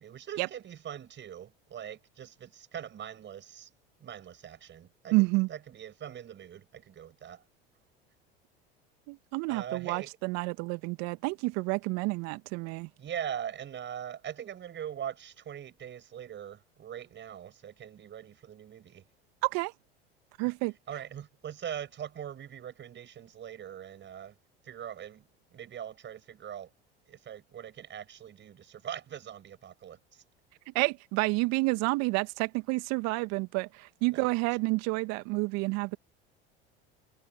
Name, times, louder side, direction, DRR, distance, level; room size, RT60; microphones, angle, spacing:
voice 1, 0.0-3.7 4.0-7.4 9.5-10.1 13.0-19.0 20.4-20.5 20.9-24.4 24.6-26.7 27.1-30.2 34.1-34.3, right 9 dB, 35° right, 6.5 m, -42 dB
voice 2, 5.1-5.5 9.1-12.9 19.4-19.7 20.4-20.7 30.7-36.0, right 25 dB, 60° right, 2.2 m, -29 dB
hypercardioid pair, 75°, 30 cm